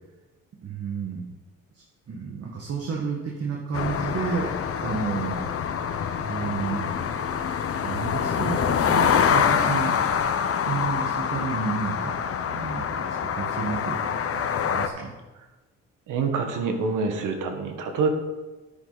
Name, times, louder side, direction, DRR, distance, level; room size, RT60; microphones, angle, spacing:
voice 1, 0.6-1.2 1.7-4.5 4.8-5.4 6.2-6.9 7.8-9.9 10.6-12.2 12.4-15.1, right 5 dB, 50° right, -1 dB, 1.7 m, -31 dB
sound 1, 3.7-14.9, left 7 dB, 50° left, 0.9 m, -25 dB
voice 2, 16.1-18.1, right 4 dB, 85° right, 5 dB, 1.5 m, -26 dB
9.8 x 9.8 x 4.1 m, 1.2 s
cardioid pair, 90°, 30 cm